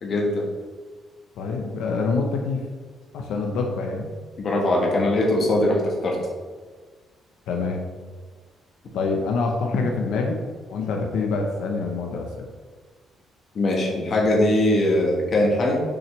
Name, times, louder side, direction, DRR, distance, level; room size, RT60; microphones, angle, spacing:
voice 1, 0.0-0.5 4.4-6.2 13.5-15.8, left 1 dB, 40° left, -1 dB, 1.4 m, -21 dB
voice 2, 1.4-2.6 3.1-4.1 7.5-7.9 8.9-10.4 10.7-12.5, left 4 dB, 90° left, 2 dB, 0.9 m, -26 dB
6.4 x 6.0 x 3.3 m, 1.5 s
cardioid pair, 160°, 0 cm